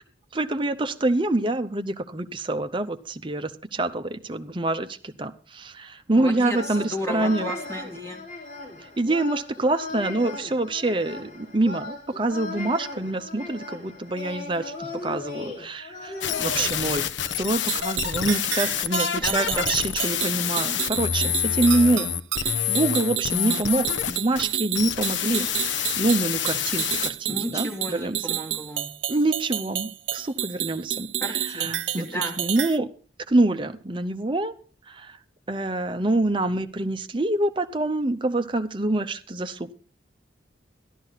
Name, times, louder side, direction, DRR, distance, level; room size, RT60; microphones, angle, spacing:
voice 1, 0.3-7.5 9.0-17.1 17.4-22.1 22.4-28.3 29.1-32.9 33.3-34.5 34.9-35.2 35.5-39.7, right 2 dB, 25° right, 8 dB, 0.7 m, -26 dB
voice 2, 6.1-8.2 19.2-19.7 27.3-28.9 31.2-32.3, equal, 15° left, -1 dB, 3.1 m, -33 dB
sound 1, 6.5-16.7, left 3 dB, 45° left, 3.7 m, -37 dB
sound 2, 16.2-27.1, left 8 dB, 75° left, 0.7 m, -27 dB
sound 3, 17.5-32.8, right 12 dB, 80° right, 0.6 m, -30 dB
12.5 x 12.0 x 4.0 m, 0.39 s
head